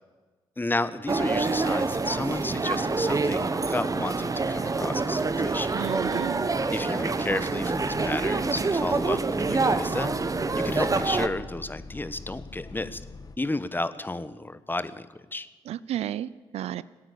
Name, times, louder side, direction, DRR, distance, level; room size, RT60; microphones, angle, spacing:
voice 1, 0.6-5.8 6.7-10.2 10.5-13.0 13.4-15.1 15.3-15.5, left 2 dB, 20° left, 13 dB, 1.1 m, -32 dB
sound 1, 1.1-11.3, right 3 dB, 30° right, 1.1 m, -26 dB
voice 2, 5.7-6.5 15.7-16.8, right 12 dB, 75° right, 18 dB, 0.5 m, -32 dB
Bus, 6.6-13.4, left 3 dB, 35° left, 1.2 m, -44 dB
17.5 x 9.2 x 8.2 m, 1.3 s
supercardioid pair, 50°, 11 cm